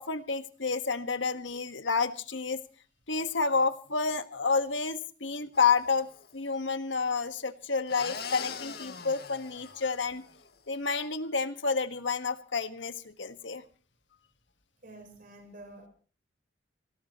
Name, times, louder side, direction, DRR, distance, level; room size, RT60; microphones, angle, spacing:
voice 1, 0.0-2.6 3.1-10.2 10.7-13.6, left 4 dB, 85° left, 9 dB, 1.5 m, -30 dB
sound 1, 5.5-6.3 7.9-10.5, left 6 dB, 60° left, 1.9 m, -42 dB
voice 2, 14.8-15.9, right 1 dB, 50° right, 4 dB, 4.3 m, -49 dB
25.0 x 17.0 x 3.0 m, 0.39 s
head